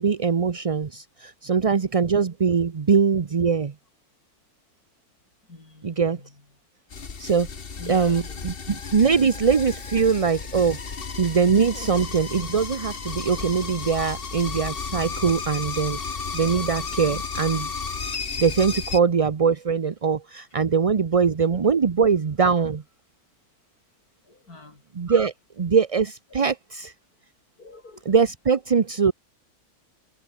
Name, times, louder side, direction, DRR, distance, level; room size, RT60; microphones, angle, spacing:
voice 1, 0.0-3.7 5.8-6.2 7.2-7.5 7.9-10.8 11.2-17.7 18.4-22.8 25.0-26.9 28.1-29.1, right 6 dB, 40° right, 0.5 m, -22 dB
voice 2, 5.5-6.4 7.8-8.4 24.2-24.8 26.3-26.5 27.6-28.1, left 3 dB, 85° left, 5.3 m, -44 dB
sound 1, 6.9-19.0, left 5 dB, 40° left, 1.6 m, -33 dB
omnidirectional pair, 1.6 m